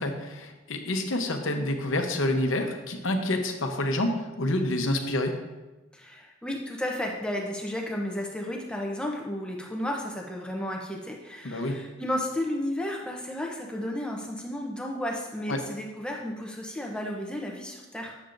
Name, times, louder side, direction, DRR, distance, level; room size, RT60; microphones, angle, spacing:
voice 1, 0.0-5.4 11.4-11.8 15.5-15.6, left 1 dB, 75° left, 4 dB, 0.8 m, -28 dB
voice 2, 5.9-18.2, left 1 dB, 5° left, -1 dB, 0.6 m, -33 dB
8.4 x 7.1 x 2.5 m, 1.1 s
head